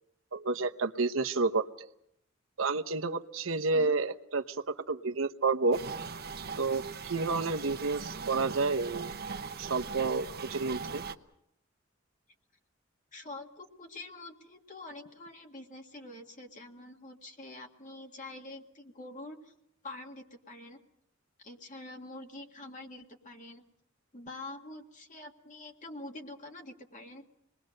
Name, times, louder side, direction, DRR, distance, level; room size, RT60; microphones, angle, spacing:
voice 1, 0.3-1.9 2.6-4.4 4.9-5.8 6.6-9.1 9.6-11.0, right 3 dB, 85° right, 7 dB, 1.0 m, -30 dB
sound 1, 5.7-11.2, right 5 dB, 50° right, 1.0 m, -40 dB
voice 2, 13.1-19.5 19.8-20.8 21.4-23.6 24.1-27.2, left 2 dB, 40° left, 2 dB, 2.0 m, -46 dB
26.5 x 20.5 x 6.6 m, 0.76 s
head